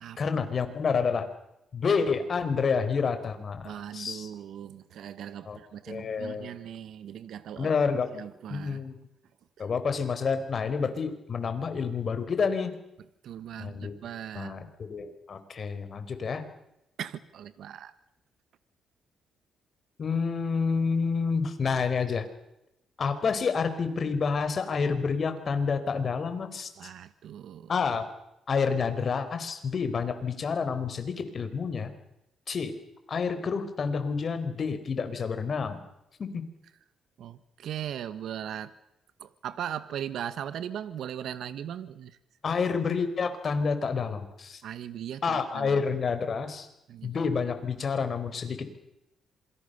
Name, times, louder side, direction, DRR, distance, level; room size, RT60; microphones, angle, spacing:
voice 1, 0.2-1.3 1.7-4.3 5.4-5.6 5.9-6.5 7.6-8.1 8.5-9.0 9.6-12.7 13.6-13.9 14.3-16.4 20.0-22.2 23.0-26.9 27.7-28.0 28.5-31.9 32.5-32.7 33.1-35.8 36.2-36.5 42.4-44.6 45.2-46.7 47.0-48.7, left 5 dB, 45° left, 9 dB, 4.3 m, -29 dB
voice 2, 3.6-7.7 8.1-8.8 13.2-14.5 17.0-17.9 26.8-27.7 37.2-38.7 39.2-42.2 44.6-45.8 46.9-47.2, right 10 dB, 75° right, 14 dB, 1.3 m, -39 dB
27.0 x 23.5 x 6.8 m, 0.84 s
cardioid pair, 90°, 0 cm